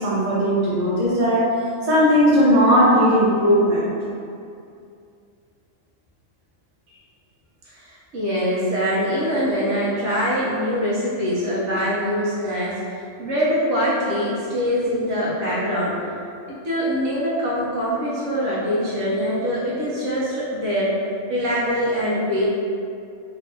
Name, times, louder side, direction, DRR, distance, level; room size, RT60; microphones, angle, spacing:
voice 1, 0.0-1.5 1.8-3.9, equal, 35° right, -9 dB, 0.9 m, -17 dB
voice 2, 7.7-12.8 13.2-15.9 16.5-20.9 21.3-22.5, equal, 70° right, -8 dB, 1.0 m, -23 dB
2.9 x 2.6 x 3.2 m, 2.4 s
omnidirectional pair, 1.3 m